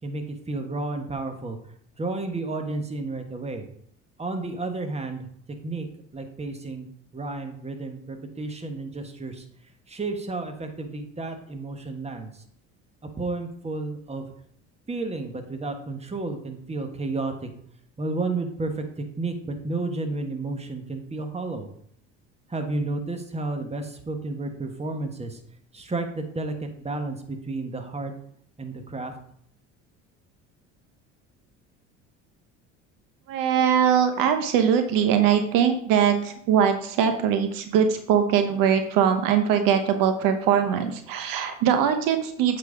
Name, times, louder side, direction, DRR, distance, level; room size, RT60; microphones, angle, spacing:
voice 1, 0.0-1.6 2.0-3.6 4.2-5.3 5.6-5.9 6.1-9.4 9.9-12.3 13.2-14.3 14.9-17.5 18.0-21.7 22.5-25.4 25.7-28.1 28.6-29.1, right 3 dB, 15° right, 6 dB, 1.3 m, -31 dB
voice 2, 33.3-42.6, right 8 dB, 65° right, 7 dB, 0.9 m, -21 dB
8.1 x 4.2 x 4.9 m, 0.66 s
hypercardioid pair, 75°, 36 cm